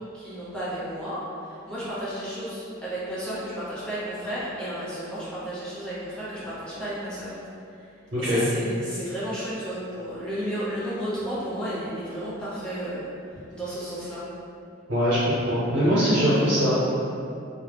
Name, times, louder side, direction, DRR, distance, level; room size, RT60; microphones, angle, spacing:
voice 1, 0.1-7.3 7.8-7.9 8.2-13.1 13.5-14.2 16.3-16.6, equal, 5° left, -12 dB, 0.7 m, -33 dB
voice 2, 8.1-8.4 14.9-16.8, equal, 60° right, -13 dB, 0.9 m, -22 dB
2.1 x 2.0 x 3.2 m, 2.6 s
head